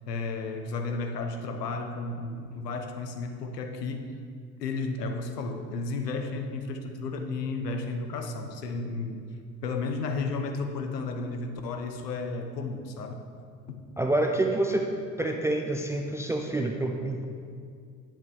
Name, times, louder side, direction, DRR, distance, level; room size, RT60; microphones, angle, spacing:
voice 1, 0.1-4.1 4.6-9.2 9.6-13.2 13.7-13.9, left 3 dB, 75° left, 6 dB, 1.0 m, -33 dB
voice 2, 14.0-14.9 15.2-17.2, right 2 dB, 5° right, 2 dB, 0.3 m, -27 dB
9.6 x 7.5 x 4.8 m, 2.2 s
figure-of-eight pair, 65°, 49 cm